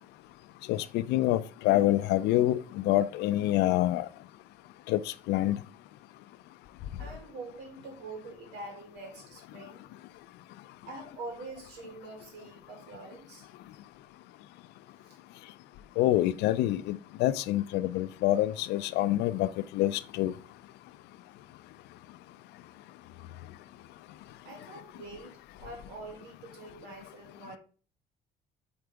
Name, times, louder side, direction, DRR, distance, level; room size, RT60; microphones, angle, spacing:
voice 1, 0.7-4.1 4.9-5.6 16.0-19.5 19.7-20.3, left 14 dB, 85° left, 0.4 m, -26 dB
voice 2, 7.0-9.8 10.9-13.5 15.0-15.2 24.4-27.6, right 3 dB, 80° right, 2.6 m, -45 dB
4.7 x 4.4 x 5.0 m
cardioid pair, 110°, 17 cm